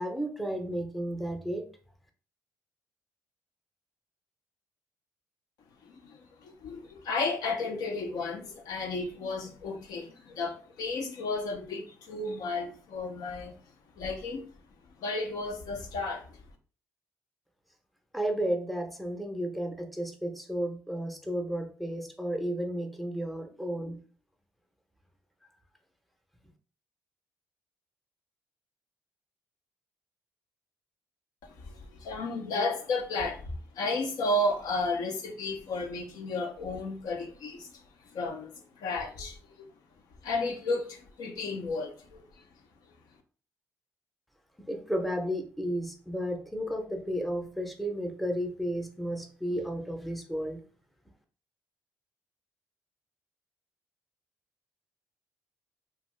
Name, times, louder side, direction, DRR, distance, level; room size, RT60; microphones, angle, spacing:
voice 1, 0.0-1.7 18.1-24.0 44.7-50.6, equal, ahead, 0.6 m, -33 dB
voice 2, 5.8-13.5 14.0-14.5 15.0-16.3 31.4-37.8 38.1-38.5 38.8-39.7 40.2-42.2, left 2 dB, 75° left, 0.6 m, -33 dB
2.6 x 2.3 x 3.2 m
supercardioid pair, 75°, 6 cm